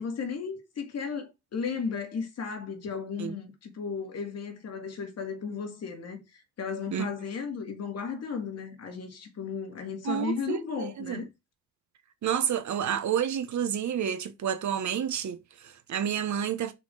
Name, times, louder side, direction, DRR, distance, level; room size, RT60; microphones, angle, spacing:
voice 1, 0.0-11.3, left 5 dB, 55° left, 2.3 m, -35 dB
voice 2, 10.0-11.2 12.2-16.7, right 9 dB, 65° right, 1.3 m, -30 dB
6.0 x 4.7 x 6.3 m
wide cardioid pair, 150°, 30 cm